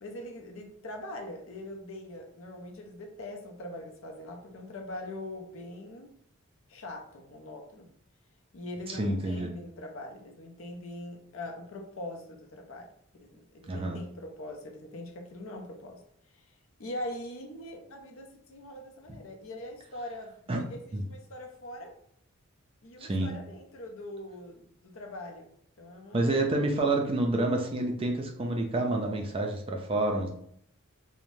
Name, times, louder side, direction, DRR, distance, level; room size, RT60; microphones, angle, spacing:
voice 1, 0.0-6.1 6.7-7.9 8.5-12.9 13.1-16.0 16.3-16.5 16.8-22.0 22.8-25.5 25.8-26.4, left 1 dB, 65° left, 3 dB, 0.5 m, -42 dB
voice 2, 8.9-9.5 13.7-14.0 20.5-20.6 20.9-21.0 23.0-23.3 26.1-30.3, right 2 dB, 25° right, 2 dB, 0.3 m, -28 dB
2.6 x 2.1 x 3.1 m, 0.67 s
head